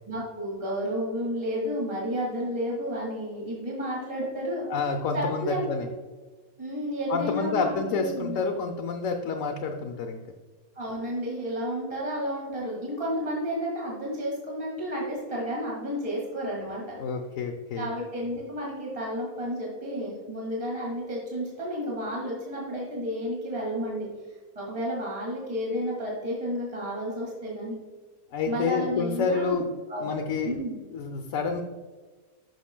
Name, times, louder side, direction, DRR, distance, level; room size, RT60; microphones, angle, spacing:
voice 1, 0.1-4.6 5.1-5.7 6.6-8.4 10.8-17.0 17.8-24.1 24.5-27.8 28.5-29.6 29.9-30.8, equal, 25° right, -4 dB, 1.9 m, -31 dB
voice 2, 4.7-5.9 7.1-10.2 17.0-17.9 28.3-29.7 30.0-30.5 30.9-31.6, left 4 dB, 65° left, 3 dB, 1.0 m, -28 dB
11.5 x 5.8 x 2.2 m, 1.4 s
omnidirectional pair, 1.6 m